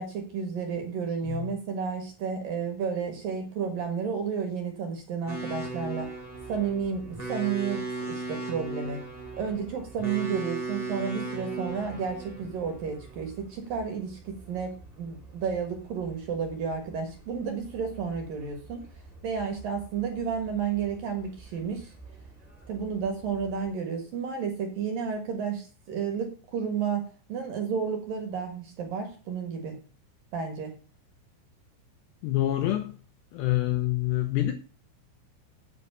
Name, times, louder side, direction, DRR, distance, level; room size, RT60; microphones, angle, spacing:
voice 1, 0.0-6.1 6.5-7.8 8.1-9.0 9.4-18.8 19.2-21.9 22.7-29.8 30.3-30.7, right 6 dB, 60° right, 2.7 m, -32 dB
sound 1, 5.3-23.7, right 3 dB, 10° right, 2.1 m, -39 dB
voice 2, 32.2-33.0 33.3-34.5, left 15 dB, 80° left, 2.6 m, -26 dB
8.3 x 8.3 x 6.8 m
omnidirectional pair, 5.8 m